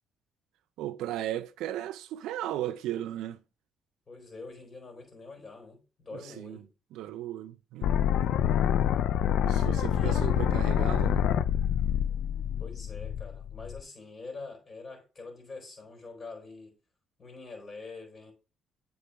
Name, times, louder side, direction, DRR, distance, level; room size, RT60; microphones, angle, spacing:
voice 1, 0.8-3.4 6.1-6.6 6.9-8.0 9.4-11.3, right 13 dB, 85° right, 0.5 m, -36 dB
voice 2, 4.1-6.6 9.9-10.2 12.6-16.7 17.2-18.3, left 3 dB, 35° left, 4.1 m, -45 dB
sound 1, 7.8-13.8, left 10 dB, 75° left, 0.4 m, -27 dB
8.4 x 4.4 x 3.5 m
cardioid pair, 90°, 0 cm